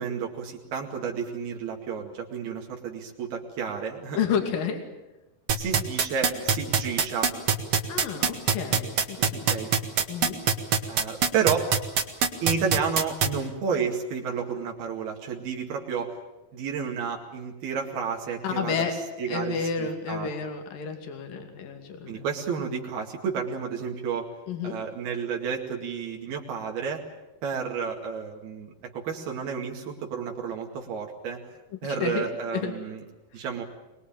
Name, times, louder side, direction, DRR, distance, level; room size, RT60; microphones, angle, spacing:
voice 1, 0.0-4.2 5.6-7.3 9.2-9.7 10.9-11.7 12.4-16.1 16.5-18.9 19.2-20.3 22.1-24.3 24.6-27.0 27.4-31.4 31.8-33.0 33.3-33.6, right 6 dB, 85° right, 0 dB, 4.3 m, -31 dB
voice 2, 4.2-4.8 7.9-9.6 10.1-10.4 18.4-19.0 19.3-22.2 24.5-24.8 32.0-32.3 32.5-32.7, left 6 dB, 65° left, 5 dB, 4.2 m, -30 dB
sound 1, 5.5-13.3, right 7 dB, 50° right, 2.4 m, -22 dB
24.0 x 21.5 x 8.9 m, 1.0 s
omnidirectional pair, 4.3 m